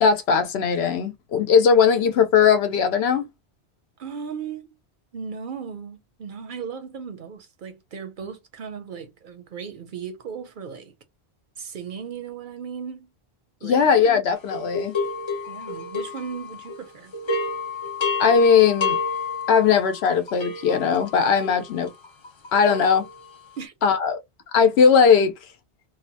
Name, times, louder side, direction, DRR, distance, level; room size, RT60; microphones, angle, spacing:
voice 1, 0.0-3.3 13.6-14.9 18.2-19.0 19.5-21.9 22.5-23.0 23.8-24.2 24.5-25.3, left 6 dB, 80° left, 0.9 m, -18 dB
voice 2, 4.0-4.8 5.1-10.9 11.6-13.1 13.6-13.9 15.5-17.1 23.6-23.7, right 6 dB, 60° right, 0.6 m, -36 dB
sound 1, 14.5-16.8 17.1-23.5, left 4 dB, 45° left, 0.4 m, -30 dB
2.7 x 2.1 x 2.6 m
omnidirectional pair, 1.1 m